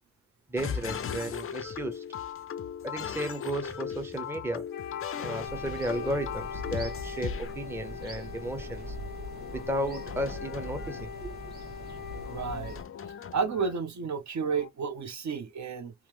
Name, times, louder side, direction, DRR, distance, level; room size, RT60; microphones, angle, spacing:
voice 1, 0.5-2.0 2.8-4.7 5.2-8.9 9.5-11.4, right 1 dB, 5° right, 0.6 m, -34 dB
sound 1, 0.6-7.6 9.4-11.1 12.1-13.8 14.4-14.7, left 8 dB, 40° left, 0.4 m, -38 dB
Wind instrument woodwind instrument, 4.7-12.7, left 9 dB, 90° left, 0.6 m, -42 dB
sound 2, 5.5-12.8, equal, 25° right, 1.3 m, -42 dB
voice 2, 12.3-12.8 13.3-15.9, right 5 dB, 55° right, 0.6 m, -31 dB
3.0 x 2.0 x 3.2 m
cardioid pair, 80°, 34 cm